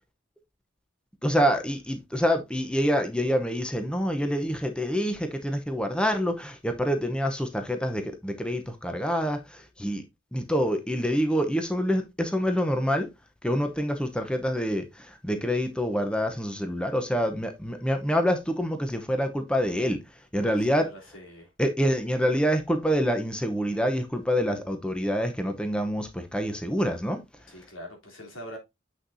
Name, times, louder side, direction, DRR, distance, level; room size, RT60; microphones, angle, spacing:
voice 1, 1.2-10.0 10.3-13.1 13.4-20.9 21.6-27.2, equal, 5° left, 0.8 m, -26 dB
voice 2, 20.4-21.5 27.5-28.6, equal, 80° left, 3.3 m, -44 dB
7.9 x 6.4 x 2.7 m
head